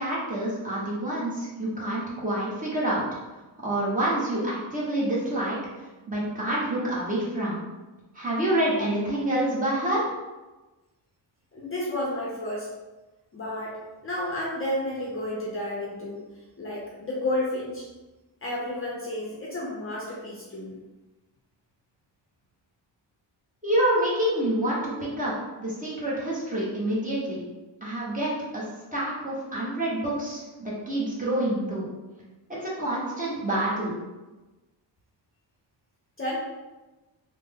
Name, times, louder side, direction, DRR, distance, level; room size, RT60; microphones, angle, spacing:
voice 1, 0.0-3.0 3.6-5.6 6.1-7.6 8.1-10.0 23.6-24.9 25.2-25.3 25.6-27.4 27.8-28.6 28.9-31.8 32.6-33.9, right 1 dB, 20° right, -7 dB, 1.0 m, -27 dB
voice 2, 11.5-12.7 13.3-16.2 16.6-17.9 18.4-20.8 36.2-36.4, left 1 dB, 30° left, -5 dB, 0.6 m, -31 dB
3.3 x 2.1 x 3.5 m, 1.1 s
cardioid pair, 130°, 44 cm